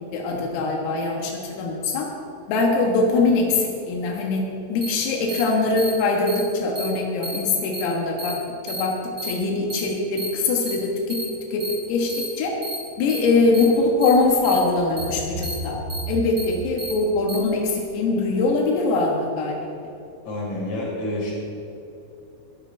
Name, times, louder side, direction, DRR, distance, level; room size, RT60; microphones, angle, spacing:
voice 1, 0.1-2.1 2.5-8.4 8.6-9.0 9.2-11.2 11.5-12.5 13.0-15.8 16.1-19.6, left 3 dB, 85° left, 0 dB, 4.3 m, -22 dB
sound 1, 4.8-4.9 5.3-5.4 5.8-5.9 6.3-6.4 6.8-6.9 7.2-7.4 7.7-7.8 8.2-8.3 8.7-8.8 9.2-9.3 9.7-9.8 10.2-10.3 10.7-10.8 11.1-11.2 11.6-11.7 12.1-12.3 12.6-12.8 13.1-13.2 13.5-13.7 14.0-14.1 14.4-14.6 15.0-15.1 15.4-15.5 15.9-16.0 16.4-16.5 16.8-16.9 17.3-17.4, right 1 dB, 30° right, 2.5 m, -31 dB
sound 2, 13.6-13.9 14.2-14.6 14.9-16.9 17.4-17.7 18.2-18.3, right 2 dB, 85° right, 4.7 m, -33 dB
voice 2, 20.3-21.3, left 1 dB, 45° left, -4 dB, 5.4 m, -28 dB
21.0 x 14.0 x 3.4 m, 2.9 s
omnidirectional pair, 5.9 m